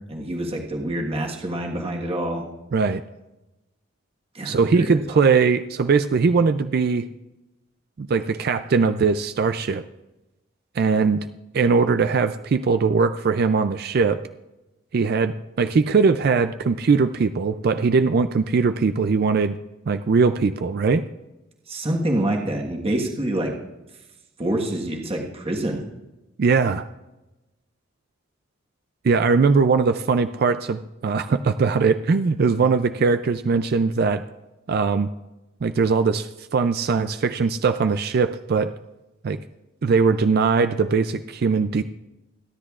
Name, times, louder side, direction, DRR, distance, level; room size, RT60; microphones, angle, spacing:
voice 1, 0.1-2.4 4.3-5.2 21.7-23.5 24.4-25.8, right 1 dB, 30° right, 0 dB, 1.4 m, -26 dB
voice 2, 2.7-3.0 4.4-7.1 8.0-9.8 10.8-11.2 11.5-14.2 14.9-19.6 19.9-21.0 26.4-26.9 29.0-34.2 34.7-35.1 35.6-38.7 39.2-39.4 39.8-41.8, right 4 dB, 50° right, 10 dB, 0.4 m, -20 dB
27.0 x 10.0 x 2.4 m, 1.0 s
head